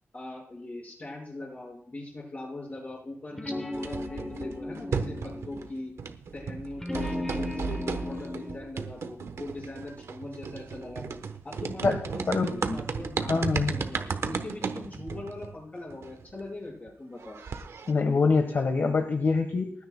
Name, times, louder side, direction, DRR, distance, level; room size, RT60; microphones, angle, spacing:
voice 1, 0.1-5.9 6.3-11.1 11.4-17.4, left 2 dB, 35° left, -2 dB, 5.6 m, -41 dB
Jazz Vibe, 3.3-5.8 6.8-8.6, left 1 dB, 10° left, 1.0 m, -35 dB
sound 1, 3.7-5.7 6.0-16.4 16.9-17.0 17.2-17.9, right 5 dB, 90° right, 1.0 m, -35 dB
voice 2, 11.8-12.8 13.2-13.7 17.9-19.7, left 4 dB, 55° left, 6 dB, 1.3 m, -25 dB
29.5 x 9.8 x 2.2 m, 0.63 s
wide cardioid pair, 130°, 5 cm